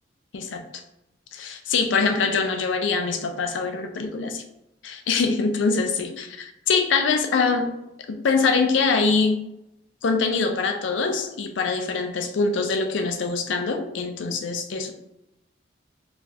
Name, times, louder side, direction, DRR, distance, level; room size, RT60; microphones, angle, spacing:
voice 1, 0.3-0.8 1.3-4.4 4.8-7.7 8.1-9.5 10.0-14.9, left 4 dB, 85° left, 6 dB, 0.4 m, -24 dB
4.1 x 2.3 x 2.7 m, 0.88 s
head